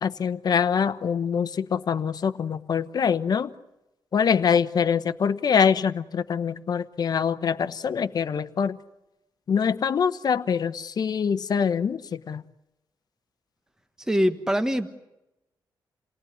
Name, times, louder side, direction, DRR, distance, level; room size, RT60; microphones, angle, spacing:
voice 1, 0.0-3.5 4.1-8.8 9.5-12.4, left 7 dB, 50° left, 1.0 m, -24 dB
voice 2, 14.0-15.0, equal, 5° right, 1.4 m, -24 dB
29.0 x 19.0 x 9.5 m
wide cardioid pair, 135°, 8 cm